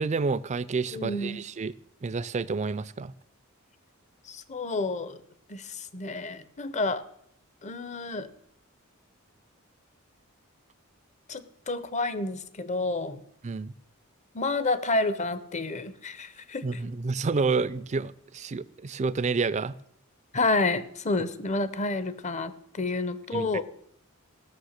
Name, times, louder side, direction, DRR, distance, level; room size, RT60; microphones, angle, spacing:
voice 1, 0.0-1.7 2.0-3.1 13.4-13.7 16.6-19.7 23.3-23.5, right 4 dB, 35° right, 16 dB, 0.4 m, -29 dB
voice 2, 0.9-1.4 4.3-5.2 5.5-7.0 7.6-8.3 11.3-13.2 14.3-16.9 20.3-23.6, left 2 dB, 35° left, 14 dB, 0.7 m, -30 dB
16.0 x 6.6 x 6.5 m, 0.70 s
head